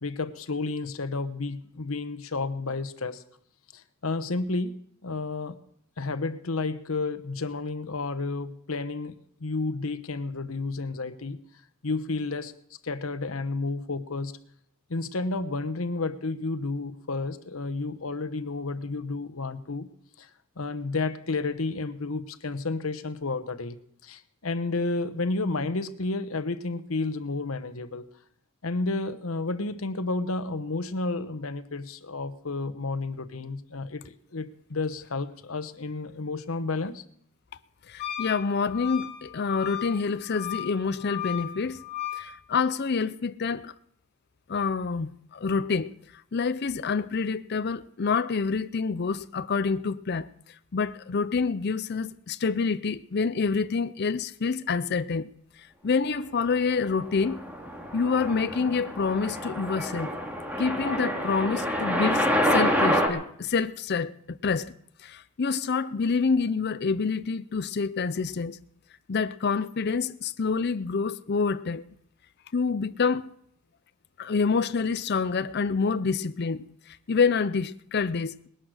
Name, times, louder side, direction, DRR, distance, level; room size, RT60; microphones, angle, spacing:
voice 1, 0.0-3.2 3.7-4.7 5.0-5.5 6.0-9.1 9.4-11.4 11.8-12.5 12.8-14.3 14.9-19.9 20.2-20.3 20.6-28.1 28.6-37.0, left 3 dB, 85° left, 1.1 m, -31 dB
voice 2, 37.9-41.8 42.1-43.7 44.5-50.3 50.7-55.3 55.6-57.4 57.9-60.2 60.6-64.7 65.0-68.6 69.1-71.8 72.5-73.3 74.2-78.4, left 5 dB, 50° left, 0.5 m, -27 dB
Wind instrument woodwind instrument, 38.0-42.3, left 12 dB, 35° left, 3.6 m, -36 dB
sound 1, 57.0-63.1, equal, 10° right, 2.2 m, -27 dB
20.0 x 11.0 x 6.3 m
head